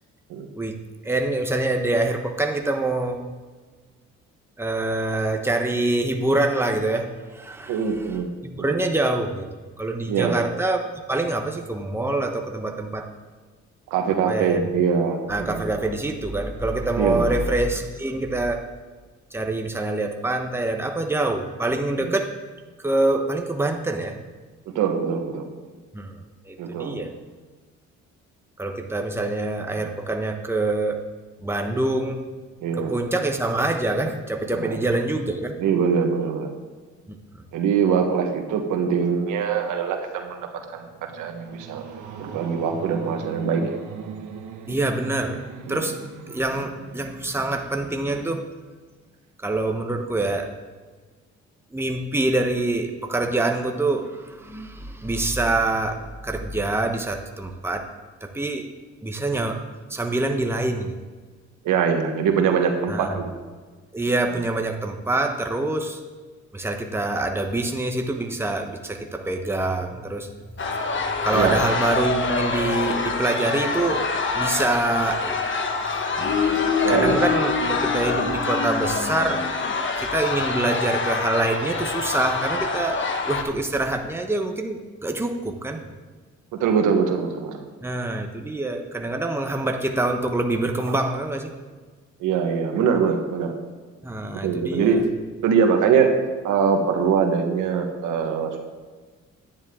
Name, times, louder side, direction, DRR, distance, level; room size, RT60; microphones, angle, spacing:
voice 1, 0.6-3.2 4.6-9.5 9.8-13.1 14.3-14.6 15.3-18.6 19.3-22.3 22.8-24.2 25.9-26.2 26.4-27.1 28.6-31.0 31.4-32.2 32.8-35.6 37.1-37.4 44.7-45.4 45.7-48.4 49.4-50.5 51.7-57.9 58.2-58.7 59.0-59.6 59.9-61.0 62.9-63.2 63.9-66.0 66.5-70.6 71.1-75.4 76.1-79.5 80.0-85.9 87.8-91.5 94.0-95.0, right 2 dB, 10° right, 4 dB, 1.1 m, -25 dB
voice 2, 7.7-8.3 8.6-8.7 10.1-10.3 13.9-15.7 17.0-17.3 24.7-25.5 26.6-27.0 32.6-32.9 34.6-34.8 35.6-36.5 37.5-40.5 40.7-41.8 42.2-43.6 45.7-45.8 61.6-63.3 71.3-71.5 76.8-77.2 86.5-87.6 92.2-93.6 94.4-95.1 95.4-96.1 96.4-98.6, right 6 dB, 90° right, 4 dB, 1.3 m, -23 dB
sound 1, 40.4-47.8, right 6 dB, 75° right, 1.2 m, -39 dB
sound 2, 70.6-83.4, left 4 dB, 40° left, 1.2 m, -25 dB
10.5 x 9.3 x 3.7 m, 1.4 s
cardioid pair, 90°, 30 cm